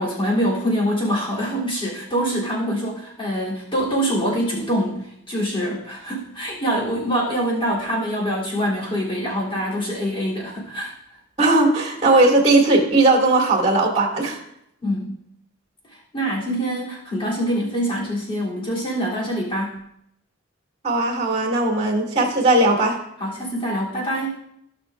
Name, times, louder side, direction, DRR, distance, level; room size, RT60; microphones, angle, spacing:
voice 1, 0.0-10.9 14.8-15.1 16.1-19.8 23.2-24.4, equal, 25° left, -6 dB, 3.4 m, -24 dB
voice 2, 11.4-14.4 20.8-23.0, right 2 dB, 30° right, -2 dB, 2.4 m, -18 dB
17.0 x 5.9 x 2.6 m, 0.77 s
head